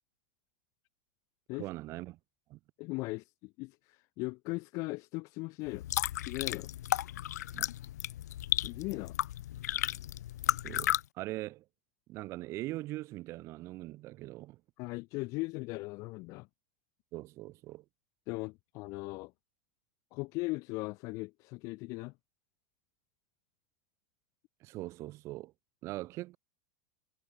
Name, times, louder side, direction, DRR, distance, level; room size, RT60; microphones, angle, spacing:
voice 1, 1.5-2.2 2.5-2.6 7.5-7.7 10.6-11.6 12.1-14.6 17.1-17.8 24.6-25.5 25.8-26.4, right 18 dB, 35° right, 3.3 m, -41 dB
voice 2, 2.8-5.8 6.2-6.7 8.6-9.2 14.8-16.5 18.3-19.3 20.1-22.1, left 24 dB, 40° left, 2.2 m, -38 dB
sound 1, 5.7-11.0, left 13 dB, 90° left, 1.5 m, -34 dB
supercardioid pair, 165°, 9 cm